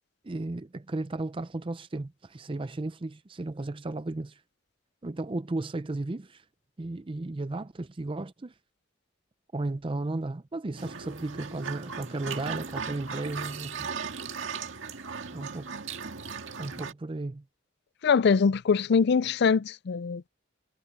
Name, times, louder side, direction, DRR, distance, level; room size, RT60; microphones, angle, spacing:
voice 1, 0.2-4.4 5.0-6.4 6.8-8.5 9.5-13.9 15.3-15.7 16.6-17.4, right 2 dB, 25° right, 0.5 m, -34 dB
sound 1, 10.8-16.9, right 5 dB, 70° right, 2.0 m, -37 dB
voice 2, 18.0-20.3, left 5 dB, 55° left, 0.4 m, -23 dB
head